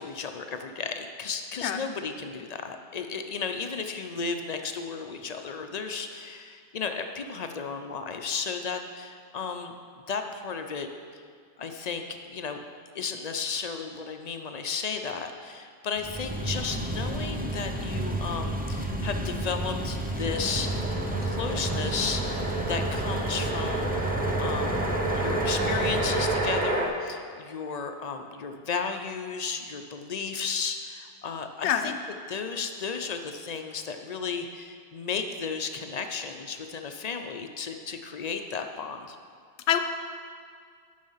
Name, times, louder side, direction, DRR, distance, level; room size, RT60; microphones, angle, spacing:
voice 1, 0.0-11.2 11.6-12.6 12.9-20.7 21.2-24.1 24.4-24.8 25.2-31.9 32.3-39.2, left 5 dB, 50° left, 6 dB, 0.5 m, -34 dB
sound 1, 16.0-26.8, right 1 dB, 15° right, 0.4 m, -31 dB
sound 2, 20.2-26.9, right 2 dB, 40° right, 0.9 m, -30 dB
voice 2, 31.6-32.0 39.7-39.8, left 9 dB, 75° left, 8 dB, 0.9 m, -25 dB
9.4 x 6.4 x 5.6 m, 2.1 s
omnidirectional pair, 1.2 m